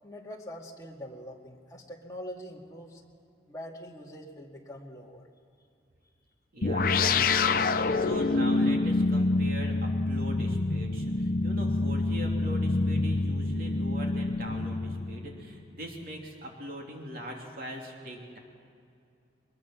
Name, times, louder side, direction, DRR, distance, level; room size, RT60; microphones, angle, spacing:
voice 1, 0.0-3.0 3.5-5.3, equal, 20° left, -1 dB, 2.1 m, -43 dB
voice 2, 6.5-18.4, equal, 50° right, 0 dB, 3.0 m, -41 dB
sound 1, 6.6-15.4, left 3 dB, 50° left, 0.7 m, -27 dB
22.5 x 21.0 x 6.0 m, 2.5 s
head